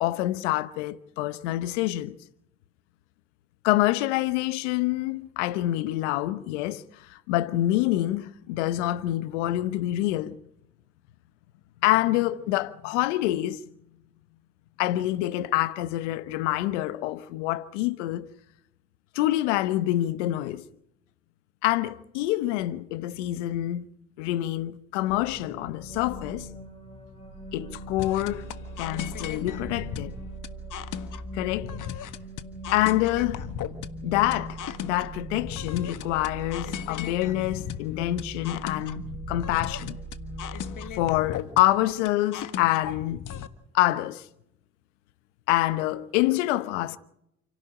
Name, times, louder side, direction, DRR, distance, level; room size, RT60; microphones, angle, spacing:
voice 1, 0.0-2.2 3.6-6.8 7.1-10.4 11.8-13.6 14.8-18.3 19.1-20.7 21.6-23.8 24.2-26.5 27.5-28.4 28.8-30.1 31.3-31.7 32.7-33.4 34.0-40.0 40.9-43.2 43.7-44.3 45.5-47.0, left 15 dB, 90° left, 1.0 m, -26 dB
sound 1, 25.1-40.9, right 1 dB, 15° left, 7.9 m, -40 dB
sound 2, 28.0-43.5, left 10 dB, 60° left, 1.6 m, -37 dB
29.0 x 11.5 x 8.9 m
hypercardioid pair, 55°, 35 cm